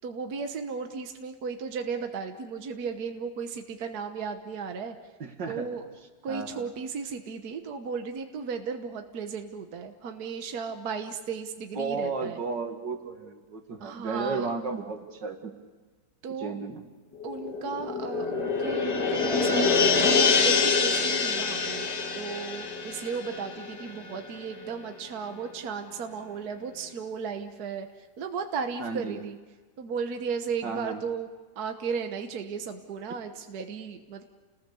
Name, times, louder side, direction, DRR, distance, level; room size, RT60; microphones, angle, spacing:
voice 1, 0.0-5.0 5.5-5.8 6.2-12.4 13.8-14.5 16.2-16.5 17.2-21.9 22.1-29.4 29.8-31.3 31.6-34.2, right 5 dB, 60° right, 6 dB, 1.6 m, -35 dB
voice 2, 5.2-5.7 6.3-6.7 11.7-15.5 16.4-16.8 28.8-29.2 30.6-31.0, right 4 dB, 80° right, 4 dB, 2.7 m, -33 dB
sound 1, 17.2-24.2 24.5-24.6, left 4 dB, 65° left, 2.5 m, -26 dB
29.5 x 20.5 x 6.9 m, 1.3 s
omnidirectional pair, 1.9 m